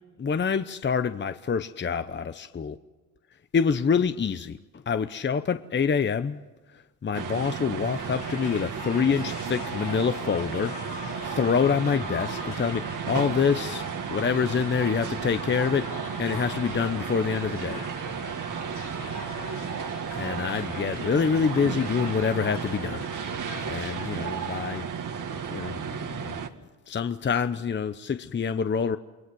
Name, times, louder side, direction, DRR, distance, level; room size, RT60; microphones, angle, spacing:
voice 1, 0.2-2.8 3.5-6.4 6.7-17.8 20.1-23.1 23.7-24.9 25.5-26.4 26.9-29.0, left 6 dB, 30° left, 0.9 m, -26 dB
sound 1, 7.1-26.5, right 7 dB, 50° right, 2.2 m, -33 dB
sound 2, 7.8-24.8, left 8 dB, 75° left, 3.2 m, -44 dB
28.5 x 21.0 x 7.8 m
cardioid pair, 90°, 40 cm